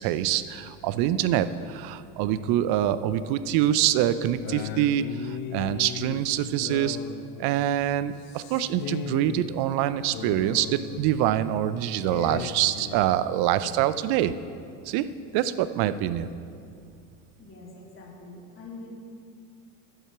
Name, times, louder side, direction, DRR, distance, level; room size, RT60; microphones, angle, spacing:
voice 1, 0.0-7.0 7.4-14.3 14.9-15.1 15.3-16.3, right 12 dB, 55° right, 14 dB, 0.6 m, -25 dB
sound 1, 3.5-13.1, left 10 dB, 50° left, 0.6 m, -38 dB
voice 2, 17.4-18.9, left 3 dB, 25° left, -2 dB, 2.6 m, -44 dB
10.5 x 7.2 x 5.9 m, 2.4 s
hypercardioid pair, 85°, 46 cm